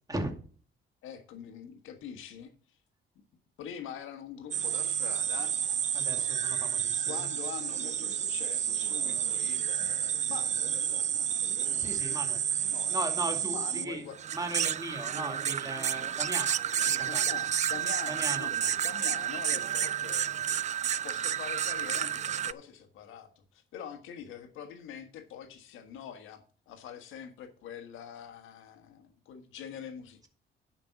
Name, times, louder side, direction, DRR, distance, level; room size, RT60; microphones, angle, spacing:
voice 1, 1.0-2.5 3.6-5.5 7.1-11.3 12.7-13.1 13.5-14.1 16.9-20.4 21.0-30.3, left 8 dB, 90° left, 7 dB, 1.5 m, -44 dB
sound 1, 4.5-22.5, right 9 dB, 35° right, 0.4 m, -30 dB
voice 2, 5.9-7.2 11.8-12.4 12.9-14.0 14.3-16.6 16.8-17.2 18.1-18.5, right 1 dB, 20° right, 3 dB, 2.4 m, -37 dB
10.5 x 5.3 x 5.9 m, 0.42 s
cardioid pair, 90°, 20 cm